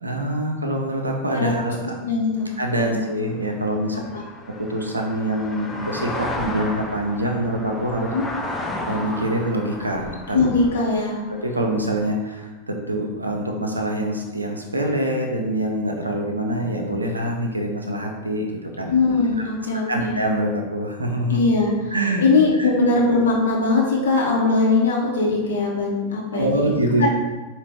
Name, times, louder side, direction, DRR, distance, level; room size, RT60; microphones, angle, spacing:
voice 1, 0.0-1.8 2.6-4.0 4.6-8.1 8.4-10.4 11.4-18.9 19.9-21.4 21.9-22.2 22.6-22.7 26.3-27.1, right 1 dB, 80° right, 1 dB, 0.6 m, -25 dB
voice 2, 2.0-2.5 2.8-3.0 8.1-8.2 10.3-11.2 18.9-20.1 21.3-21.7 22.2-26.6 27.0-27.1, left 3 dB, 65° left, -2 dB, 1.0 m, -20 dB
sound 1, 2.4-12.4, left 1 dB, 15° left, 0.5 m, -34 dB
4.8 x 2.5 x 3.4 m, 1.2 s
figure-of-eight pair, 90°, 0 cm